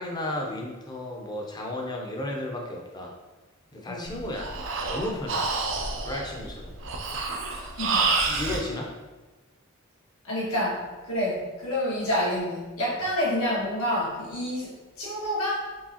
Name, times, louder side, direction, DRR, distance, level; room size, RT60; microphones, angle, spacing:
voice 1, 0.0-3.1 3.7-4.5 4.9-5.4 6.0-6.7 8.3-8.9 12.9-13.0, left 1 dB, 20° left, 0 dB, 0.6 m, -33 dB
Breathing, 4.1-8.6, right 3 dB, 60° right, 0.5 m, -28 dB
voice 2, 7.5-8.3 10.2-15.7, left 1 dB, 90° left, -7 dB, 1.5 m, -29 dB
4.7 x 3.3 x 2.8 m, 1.2 s
head